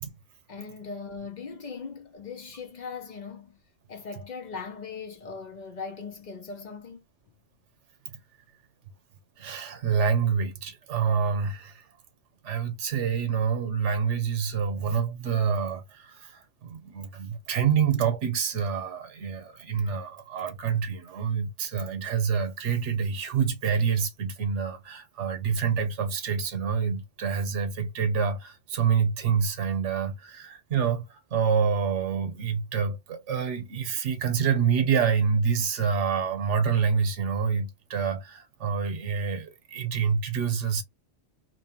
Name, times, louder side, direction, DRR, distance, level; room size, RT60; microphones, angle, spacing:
voice 1, 0.5-3.6 3.9-7.0, left 5 dB, 50° left, 0.6 m, -39 dB
voice 2, 9.4-11.8 12.4-40.8, right 6 dB, 90° right, 1.1 m, -27 dB
3.0 x 2.1 x 2.8 m
omnidirectional pair, 1.2 m